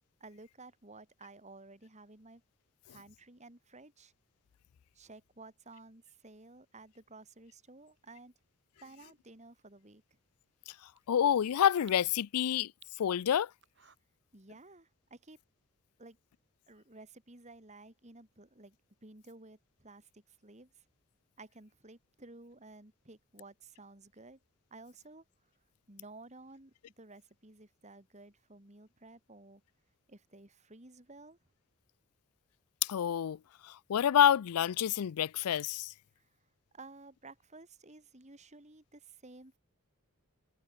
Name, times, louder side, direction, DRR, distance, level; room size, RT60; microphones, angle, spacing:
voice 1, 0.2-2.4 2.8-4.1 4.9-8.3 8.8-10.0 14.3-15.4 16.0-16.2 16.7-18.8 19.0-20.8 21.4-24.4 24.7-25.2 25.9-29.6 30.1-31.4 36.2-36.4 36.7-39.6, right 2 dB, 30° right, 2.5 m, -54 dB
sound 1, 7.8-14.0, right 9 dB, 55° right, 5.4 m, -67 dB
voice 2, 11.1-12.7 13.0-13.5 32.8-33.4 33.6-35.9, left 9 dB, 85° left, 0.4 m, -28 dB
head